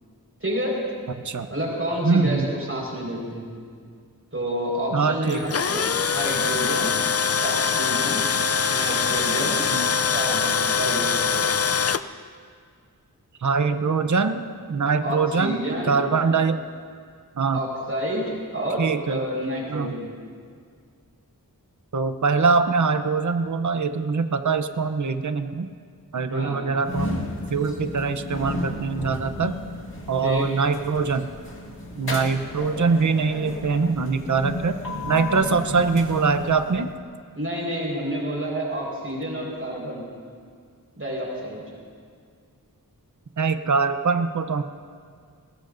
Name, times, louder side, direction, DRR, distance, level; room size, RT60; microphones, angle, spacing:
voice 1, 0.4-0.8 1.5-3.6 4.3-6.9 7.4-8.3 8.6-9.6 10.1-11.4 15.0-16.0 17.5-20.1 26.2-26.7 30.2-30.5 37.3-40.1 40.9-41.6, equal, 40° right, -3 dB, 4.7 m, -29 dB
voice 2, 2.0-2.5 4.9-5.4 9.7-9.9 13.4-14.4 14.7-16.6 17.4-17.6 18.8-19.2 19.7-19.9 21.9-25.7 26.1-27.2 27.5-29.5 30.1-31.3 31.9-34.7 35.0-36.9 43.4-44.6, right 4 dB, 55° right, 9 dB, 0.8 m, -23 dB
Tools, 5.3-12.0, left 6 dB, 45° left, 0.5 m, -23 dB
sound 1, 26.8-37.0, left 2 dB, 80° left, 1.8 m, -33 dB
21.5 x 19.5 x 2.6 m, 2.1 s
wide cardioid pair, 55°, 36 cm